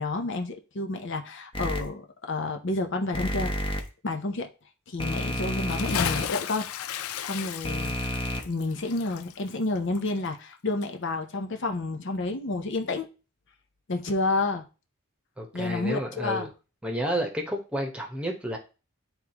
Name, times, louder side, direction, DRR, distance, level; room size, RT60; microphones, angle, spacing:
voice 1, 0.0-3.5 4.0-4.5 4.9-6.7 7.3-7.9 8.4-13.1 13.9-14.6 15.5-16.5, left 2 dB, 55° left, 0.7 m, -30 dB
sound 1, 1.5-1.8 3.1-3.8 5.0-6.2 7.6-8.4, left 1 dB, 25° left, 1.0 m, -30 dB
Bathtub (filling or washing) / Splash splatter, 5.6-10.6 10.8-10.9, left 9 dB, 90° left, 0.5 m, -34 dB
voice 2, 15.4-16.5 16.8-18.6, equal, 5° right, 1.1 m, -31 dB
10.5 x 3.6 x 2.9 m
head